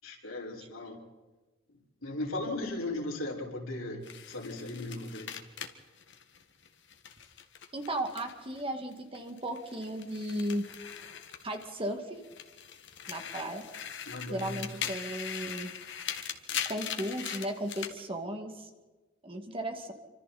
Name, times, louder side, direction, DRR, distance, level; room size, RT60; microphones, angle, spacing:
voice 1, 0.0-1.0 2.0-4.0 4.3-5.3 14.0-14.6, left 2 dB, 75° left, -2 dB, 5.5 m, -37 dB
sound 1, 4.0-8.6 8.9-11.9 12.2-18.0, left 8 dB, 60° left, 1.9 m, -41 dB
voice 2, 7.7-10.6 11.4-12.2 13.1-13.6 14.3-15.7 16.6-18.7 19.2-19.9, right 1 dB, 25° right, 4 dB, 2.4 m, -35 dB
28.0 x 25.5 x 4.4 m, 1.3 s
head